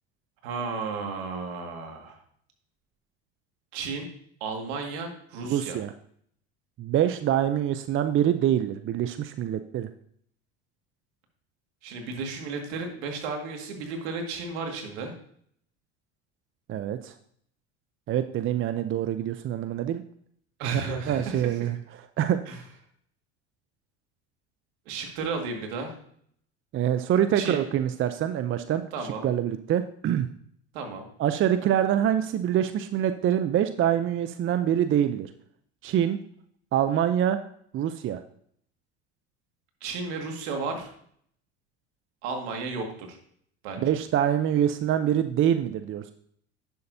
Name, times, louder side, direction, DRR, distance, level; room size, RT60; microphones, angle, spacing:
voice 1, 0.4-2.2 3.7-4.1 4.4-5.8 11.8-15.1 20.6-21.7 22.5-22.6 24.9-26.0 27.3-27.6 28.9-29.2 30.7-31.1 39.8-40.9 42.2-43.2 43.6-44.0, right 4 dB, 75° right, 3 dB, 2.0 m, -33 dB
voice 2, 5.4-5.9 6.8-9.9 16.7-17.1 18.1-20.0 20.6-21.8 22.2-22.4 26.7-28.8 29.2-30.3 31.2-35.3 35.8-36.2 36.7-37.4 37.7-38.2 43.8-46.1, right 10 dB, 40° right, 10 dB, 0.5 m, -25 dB
10.0 x 7.0 x 2.7 m, 0.64 s
supercardioid pair, 90°, 33 cm